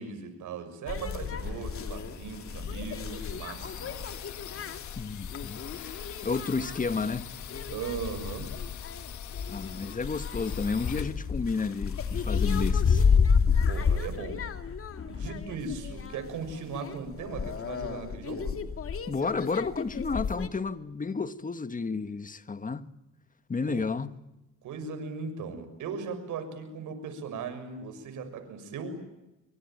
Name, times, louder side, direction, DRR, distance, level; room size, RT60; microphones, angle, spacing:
voice 1, 0.0-4.0 7.7-8.5 13.7-14.4 15.1-18.6 23.7-23.8 24.6-29.0, right 5 dB, 85° right, 6.6 m, -38 dB
sound 1, 0.9-20.5, left 6 dB, 45° left, 2.5 m, -31 dB
sound 2, 1.3-13.7, left 11 dB, 70° left, 1.8 m, -46 dB
voice 2, 4.9-7.3 9.5-13.0 19.1-22.8 23.5-24.2, left 4 dB, 25° left, 1.6 m, -32 dB
25.5 x 24.0 x 9.2 m
cardioid pair, 90°, 30 cm